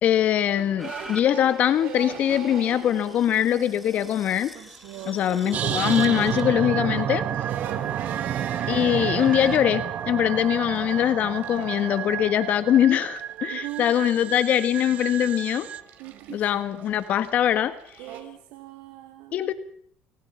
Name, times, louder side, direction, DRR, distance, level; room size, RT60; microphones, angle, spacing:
voice 1, 0.0-4.5 5.1-7.3 8.7-15.7 16.3-18.0 19.3-19.5, left 10 dB, 55° left, 13 dB, 1.5 m, -22 dB
sound 1, 0.5-18.2, right 8 dB, 65° right, 5.1 m, -43 dB
sound 2, 0.8-9.6 10.2-10.3, equal, ahead, 2.5 m, -44 dB
voice 2, 4.8-5.2 7.6-8.0 13.5-14.4 16.0-16.4 18.0-19.5, right 15 dB, 85° right, 4 dB, 3.0 m, -41 dB
sound 3, 5.5-15.8, right 10 dB, 50° right, 1.5 m, -30 dB
29.5 x 23.5 x 5.7 m, 0.62 s
cardioid pair, 120°, 3 cm